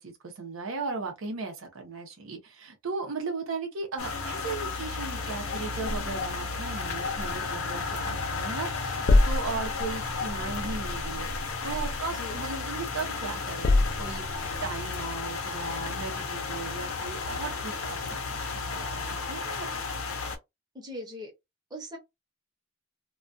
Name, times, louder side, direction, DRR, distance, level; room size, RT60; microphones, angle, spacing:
voice 1, 0.0-11.3 11.6-19.7, right 4 dB, 75° right, 0.7 m, -37 dB
sound 1, 4.0-20.4, left 4 dB, 90° left, 0.6 m, -33 dB
voice 2, 5.7-6.1 9.5-9.9 12.1-12.4 20.7-21.3 21.7-22.0, left 1 dB, 20° right, 0.8 m, -41 dB
sound 2, 5.9-8.4 8.7-12.9 13.3-14.6, left 2 dB, 45° left, 0.3 m, -29 dB
2.3 x 2.2 x 2.5 m
head